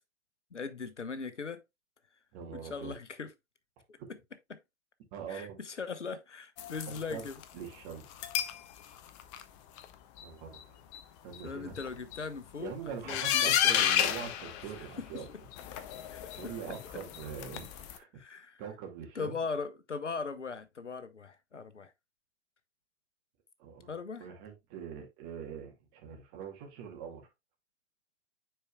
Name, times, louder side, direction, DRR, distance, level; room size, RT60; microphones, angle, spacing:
voice 1, 0.5-1.6 2.5-3.3 3.9-4.2 4.5-4.6 5.3-7.4 11.4-13.9 14.7-15.4 16.1-16.5 18.1-18.6 19.1-21.9 23.9-24.3, left 4 dB, 85° left, 0.9 m, -40 dB
voice 2, 2.3-2.9 5.1-5.6 7.1-7.3 7.5-8.0 10.2-10.8 11.2-11.8 12.6-15.3 15.7-15.8 16.4-18.2 18.6-19.4 23.6-27.2, right 7 dB, 35° right, 2.1 m, -43 dB
sound 1, 6.6-7.4 8.1-8.6 9.0-9.4 9.8-9.9 10.2-10.3 10.5-10.6 10.9-11.0 11.3-11.4 11.7-12.2 13.1-15.2 15.5-18.0, left 10 dB, 25° left, 0.6 m, -32 dB
9.5 x 4.6 x 2.3 m
figure-of-eight pair, 110°, 35 cm